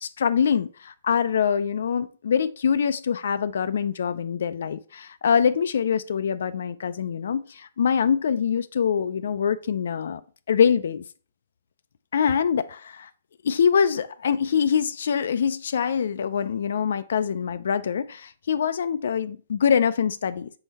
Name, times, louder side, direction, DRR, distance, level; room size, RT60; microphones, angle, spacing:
voice 1, 0.0-10.2 10.5-11.0 12.1-13.1 13.4-20.5, left 7 dB, 70° left, 0.4 m, -24 dB
6.0 x 3.8 x 4.0 m
hypercardioid pair, 155°, 0 cm